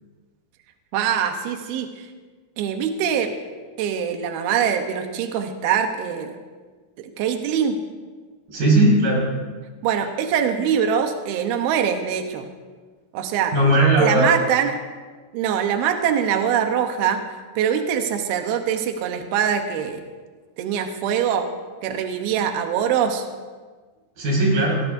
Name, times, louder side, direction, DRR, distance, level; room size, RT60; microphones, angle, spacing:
voice 1, 0.9-2.1 2.6-3.3 3.8-6.4 7.0-7.8 9.8-12.5 13.1-13.5 14.0-14.7 15.3-17.2 17.6-20.0 20.6-21.5 21.8-23.3, right 8 dB, 85° right, 5 dB, 2.1 m, -23 dB
voice 2, 8.5-9.2 13.5-14.3 24.2-24.8, right 1 dB, 45° right, -5 dB, 7.0 m, -17 dB
23.0 x 17.5 x 2.7 m, 1.4 s
omnidirectional pair, 5.9 m